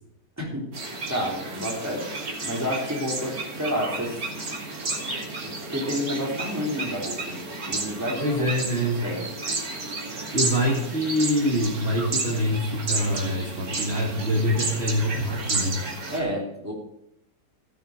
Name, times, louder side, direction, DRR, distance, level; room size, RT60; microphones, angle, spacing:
voice 1, 0.4-0.7 1.1-2.1 2.4-4.1 4.8-5.1 5.4-8.5 8.8-9.2 16.1-16.7, equal, 10° right, -3 dB, 3.4 m, -30 dB
sound 1, 0.7-16.2, right 3 dB, 60° right, 2.8 m, -32 dB
voice 2, 8.2-9.1 10.3-15.8, equal, 40° right, -3 dB, 2.3 m, -25 dB
14.0 x 8.8 x 5.2 m, 0.78 s
omnidirectional pair, 1.8 m